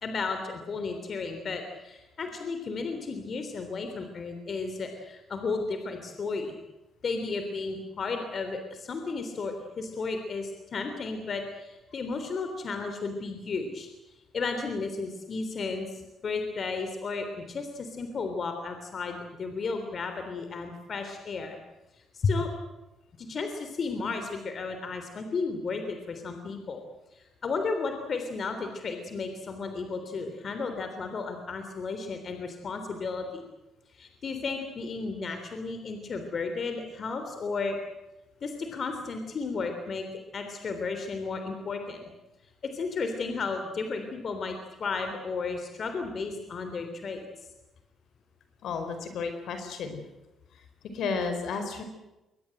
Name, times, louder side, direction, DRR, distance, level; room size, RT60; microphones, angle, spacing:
voice 1, 0.0-6.5 7.0-13.9 14.3-21.6 22.1-22.5 23.2-26.8 27.1-33.4 33.9-37.8 38.4-40.1 40.3-42.1 42.6-47.3, left 4 dB, 50° left, 6 dB, 3.4 m, -33 dB
voice 2, 48.6-50.0 50.9-51.8, left 5 dB, 75° left, 7 dB, 4.6 m, -32 dB
23.5 x 19.5 x 7.9 m, 0.99 s
cardioid pair, 90°, 0 cm